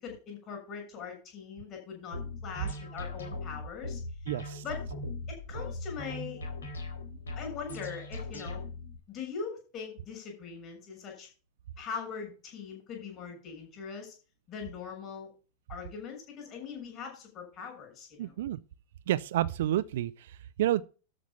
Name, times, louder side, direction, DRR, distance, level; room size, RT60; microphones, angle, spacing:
voice 1, 0.0-4.0 4.6-4.8 5.3-6.4 7.4-8.6 9.1-11.3 11.8-14.1 14.5-15.3 15.7-18.3, left 6 dB, 30° left, 6.6 m, -41 dB
sound 1, 2.1-9.0, left 2 dB, 70° left, 3.8 m, -39 dB
voice 2, 4.3-4.6 18.2-18.6 19.1-20.8, right 13 dB, 55° right, 0.6 m, -30 dB
13.0 x 6.1 x 5.6 m
figure-of-eight pair, 90°, 0 cm